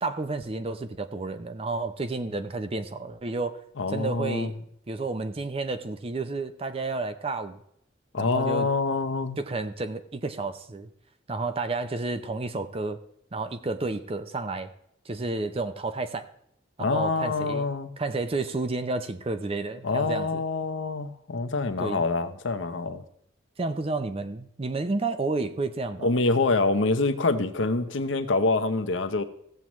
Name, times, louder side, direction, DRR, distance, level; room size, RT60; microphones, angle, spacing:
voice 1, 0.0-3.6 3.9-4.5 4.9-7.6 8.2-8.7 9.4-10.9 11.3-13.0 13.3-14.7 15.1-16.3 16.8-17.7 18.0-20.4 21.8-22.0 23.6-26.1, right 3 dB, 30° right, 10 dB, 0.6 m, -31 dB
voice 2, 3.8-4.5 8.1-9.4 16.8-17.9 19.8-23.0 26.0-29.2, left 3 dB, 80° left, 9 dB, 0.8 m, -26 dB
16.0 x 7.3 x 3.1 m, 0.72 s
head